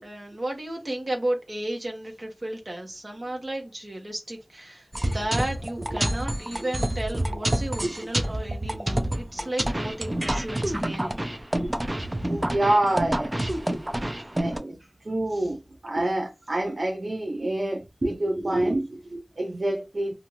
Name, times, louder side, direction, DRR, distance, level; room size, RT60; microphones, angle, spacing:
voice 1, 0.0-11.2 14.0-14.1, right 1 dB, 55° right, 1.2 m, -33 dB
sound 1, 4.9-14.6, right 1 dB, 30° right, 0.5 m, -28 dB
voice 2, 12.3-13.3 14.4-14.8 15.1-15.6 15.8-20.1, right 1 dB, 75° right, 0.7 m, -27 dB
2.7 x 2.5 x 2.9 m
wide cardioid pair, 55°, 0 cm